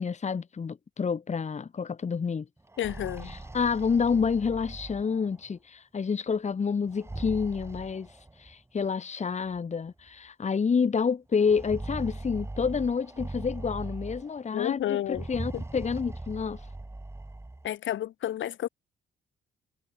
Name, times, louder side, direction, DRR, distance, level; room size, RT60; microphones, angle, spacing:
voice 1, 0.0-2.5 3.3-16.6, left 5 dB, 35° left, 1.9 m, -29 dB
sound 1, 2.6-5.5 6.9-8.5 9.5-9.6 10.0-10.1 11.4-14.5 15.1-17.7, right 2 dB, 15° right, 3.6 m, -40 dB
voice 2, 2.8-3.4 14.5-15.3 15.5-15.6 17.6-18.7, left 12 dB, 75° left, 5.9 m, -31 dB
cardioid pair, 90°, 20 cm